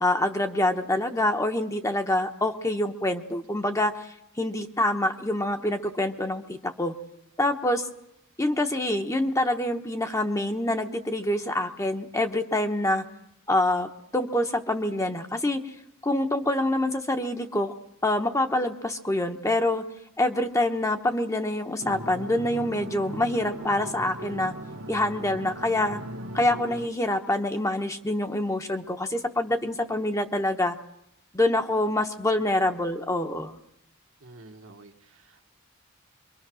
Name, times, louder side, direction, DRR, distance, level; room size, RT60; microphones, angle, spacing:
voice 1, 0.0-6.9 7.4-7.9 8.4-13.0 13.5-15.6 16.0-17.7 18.0-19.8 20.2-24.5 24.9-26.0 26.3-30.8 31.3-33.6, left 1 dB, 15° left, 5 dB, 0.9 m, -26 dB
sound 1, 21.8-26.9, right 1 dB, 90° right, 1.7 m, -38 dB
voice 2, 34.2-35.4, right 2 dB, 70° right, 3 dB, 1.6 m, -50 dB
25.5 x 23.0 x 6.2 m, 0.81 s
head